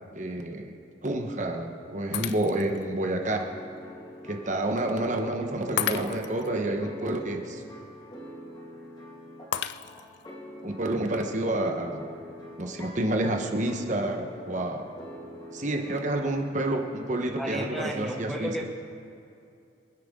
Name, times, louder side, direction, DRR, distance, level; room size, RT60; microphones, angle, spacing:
voice 1, 0.1-0.7 1.0-3.4 4.2-7.6 10.6-12.0 12.6-14.9 15.5-18.5, right 1 dB, 40° right, 3 dB, 1.1 m, -29 dB
Shatter, 2.1-2.8 3.4-3.5 5.8-6.5 9.5-10.3, left 10 dB, 55° left, 0.4 m, -33 dB
sound 1, 3.4-17.1, equal, 20° left, 2.0 m, -45 dB
voice 2, 17.4-18.6, equal, ahead, 1 dB, 1.1 m, -33 dB
26.0 x 10.0 x 3.7 m, 2.5 s
head